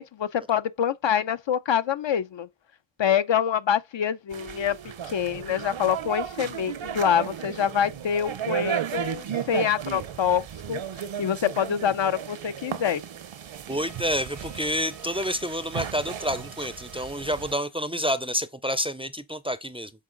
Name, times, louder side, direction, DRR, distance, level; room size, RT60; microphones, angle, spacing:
voice 1, 0.0-2.5 3.0-4.8 5.1-10.8 11.2-13.0, left 8 dB, 65° left, 0.6 m, -26 dB
sound 1, 4.3-17.6, right 9 dB, 70° right, 0.8 m, -35 dB
voice 2, 13.7-19.9, equal, 10° right, 0.4 m, -29 dB
Wind instrument woodwind instrument, 13.9-17.7, left 1 dB, 85° left, 2.6 m, -53 dB
7.4 x 3.8 x 3.8 m
cardioid pair, 50°, 49 cm